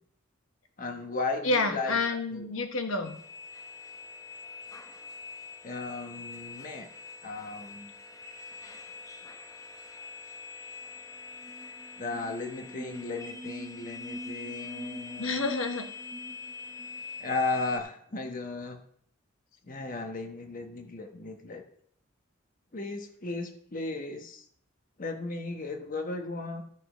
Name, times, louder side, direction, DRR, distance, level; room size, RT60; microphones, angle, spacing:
voice 1, 0.8-2.0 2.3-2.5 5.6-6.9 7.2-7.9 12.0-15.5 17.2-18.8 19.7-21.6 22.7-24.4 25.0-26.6, left 3 dB, 45° left, 5 dB, 1.1 m, -35 dB
voice 2, 1.4-3.2 15.2-15.9, left 3 dB, 80° left, 6 dB, 1.1 m, -29 dB
sound 1, 3.0-17.8, left 4 dB, 15° left, 0.8 m, -44 dB
sound 2, 11.0-11.1 11.3-17.0, equal, 15° right, 0.5 m, -45 dB
14.0 x 5.1 x 5.1 m, 0.64 s
head